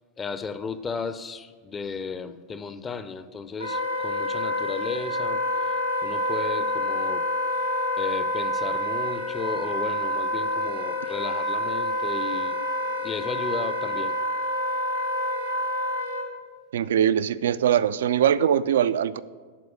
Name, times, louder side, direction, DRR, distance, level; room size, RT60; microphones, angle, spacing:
voice 1, 0.2-5.4 5.7-5.8 6.0-7.3 8.0-12.6 13.0-14.1, left 5 dB, 20° left, 0.5 m, -34 dB
Wind instrument woodwind instrument, 3.6-16.3, equal, 80° left, 1.8 m, -27 dB
voice 2, 16.7-19.2, right 9 dB, 60° right, 0.3 m, -22 dB
11.5 x 4.6 x 6.1 m
figure-of-eight pair, 90°, 0 cm